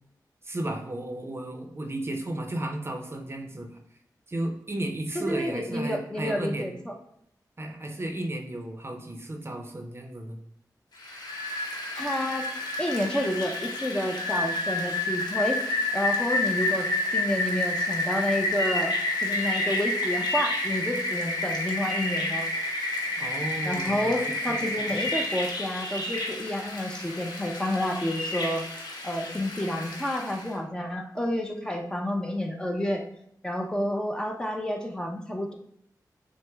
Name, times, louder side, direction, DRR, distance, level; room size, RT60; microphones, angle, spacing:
voice 1, 0.4-3.8 4.3-6.8 7.6-10.4 23.2-24.9, right 1 dB, 35° right, 4 dB, 0.6 m, -34 dB
voice 2, 5.1-6.9 12.0-12.4 12.8-16.9 17.1-18.9 19.2-22.5 23.6-28.7 29.0-33.0 33.4-35.5, equal, 10° left, 2 dB, 0.6 m, -29 dB
Rain, 11.0-30.5, left 2 dB, 70° left, 0.8 m, -30 dB
6.2 x 2.1 x 3.4 m, 0.71 s
wide cardioid pair, 70°, 7 cm